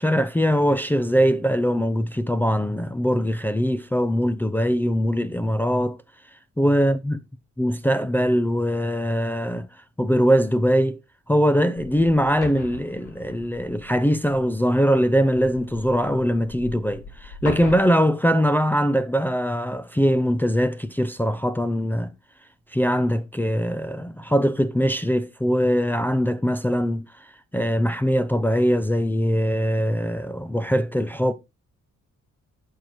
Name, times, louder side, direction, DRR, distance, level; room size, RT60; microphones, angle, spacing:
voice 1, 0.0-6.0 6.6-7.2 7.6-9.7 10.0-11.0 11.3-22.1 22.7-27.0 27.5-31.3, equal, 5° left, 0.5 m, -22 dB
sound 1, 11.7-17.8, left 4 dB, 80° left, 1.9 m, -40 dB
9.1 x 6.4 x 3.0 m
cardioid pair, 90°, 30 cm